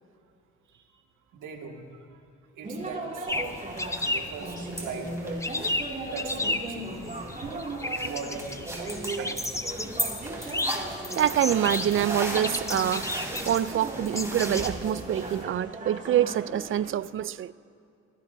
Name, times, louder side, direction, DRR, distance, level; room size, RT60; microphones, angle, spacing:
voice 1, 1.3-1.8 2.6-3.5 4.1-5.4 5.8-9.5 9.9-10.0 16.8-17.0, right 5 dB, 85° right, 2.0 m, -40 dB
sound 1, 2.6-16.9, right 2 dB, 25° right, 2.4 m, -37 dB
sound 2, 3.3-14.7, left 2 dB, 10° left, 0.7 m, -33 dB
sound 3, 3.3-15.4, right 1 dB, 10° right, 3.1 m, -38 dB
voice 2, 11.2-13.1 13.5-17.5, right 11 dB, 45° right, 0.4 m, -26 dB
24.0 x 16.5 x 2.7 m
cardioid pair, 90°, 30 cm